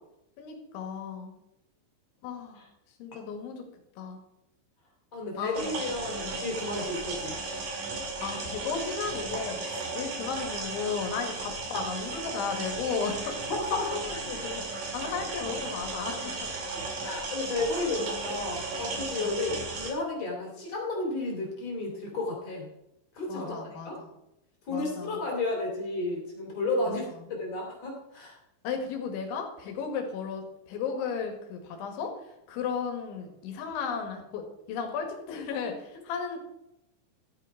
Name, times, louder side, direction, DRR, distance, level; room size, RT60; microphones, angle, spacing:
voice 1, 0.4-1.3 2.2-2.7 3.0-3.6 4.0-4.2 5.4-5.7 6.2-6.4 8.2-14.6 14.9-16.5 19.2-19.3 23.3-24.1 24.7-25.2 26.9-27.0 28.6-32.1 32.5-36.4, left 6 dB, 75° left, 4 dB, 4.2 m, -35 dB
voice 2, 5.1-7.4 11.4-11.9 13.5-13.9 17.0-22.7 23.1-24.0 24.7-27.0 27.3-28.4, left 2 dB, 35° left, -1 dB, 3.8 m, -32 dB
sound 1, 5.5-19.9, right 3 dB, 50° right, 3.4 m, -35 dB
13.5 x 9.1 x 4.8 m, 0.86 s
omnidirectional pair, 5.5 m